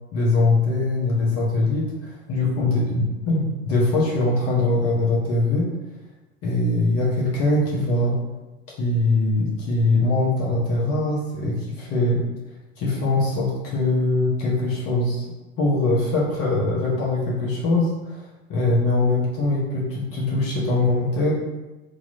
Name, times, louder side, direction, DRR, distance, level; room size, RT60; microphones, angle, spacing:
voice 1, 0.1-5.7 6.4-8.2 8.8-12.2 12.8-15.3 15.6-21.3, left 2 dB, 35° left, -5 dB, 1.1 m, -22 dB
3.0 x 2.9 x 4.0 m, 1.1 s
figure-of-eight pair, 85°, 40 cm